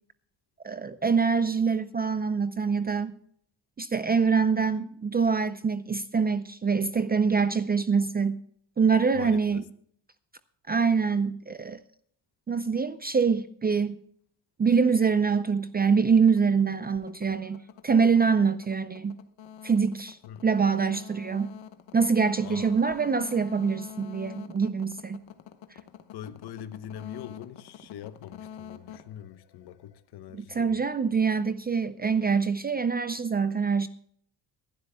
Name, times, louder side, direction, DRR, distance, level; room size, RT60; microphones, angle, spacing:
voice 1, 0.6-3.2 3.8-8.4 8.8-9.6 10.7-11.8 12.5-14.0 14.6-19.2 19.6-20.2 20.4-21.5 21.9-25.2 30.3-33.9, right 5 dB, 25° right, 0.4 m, -25 dB
voice 2, 9.1-9.6 20.2-20.4 22.4-22.8 26.1-30.8, left 10 dB, 65° left, 0.9 m, -43 dB
sound 1, 16.1-30.0, left 9 dB, 85° left, 1.1 m, -46 dB
24.0 x 12.0 x 2.2 m
cardioid pair, 150°, 43 cm